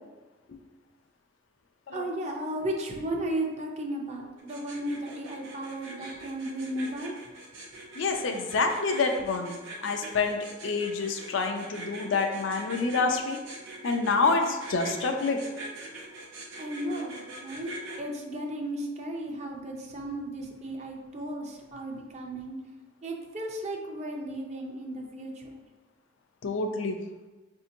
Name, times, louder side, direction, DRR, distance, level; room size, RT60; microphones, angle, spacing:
voice 1, 1.9-7.1 16.6-17.7 18.0-22.6 23.0-25.6, right 1 dB, 35° right, 1 dB, 0.5 m, -35 dB
sound 1, 4.4-18.0, right 2 dB, 75° right, 0.7 m, -43 dB
voice 2, 7.9-13.4 13.8-15.4 26.4-27.0, left 4 dB, 70° left, 4 dB, 0.4 m, -28 dB
5.0 x 2.7 x 2.6 m, 1.2 s
head